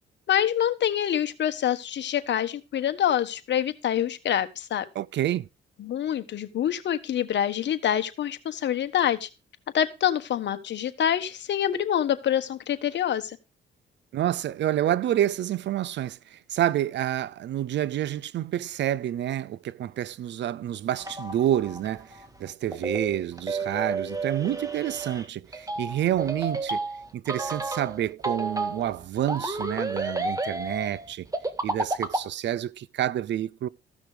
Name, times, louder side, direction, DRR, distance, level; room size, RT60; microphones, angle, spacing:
voice 1, 0.3-4.8 5.8-9.3 9.7-13.4, left 10 dB, 65° left, 1.3 m, -26 dB
voice 2, 5.0-5.5 14.1-22.1 22.4-26.8 27.1-31.3 31.6-33.7, right 12 dB, 65° right, 0.6 m, -28 dB
sound 1, 21.0-32.3, right 3 dB, 15° right, 1.7 m, -31 dB
14.5 x 6.1 x 5.0 m
cardioid pair, 90°, 20 cm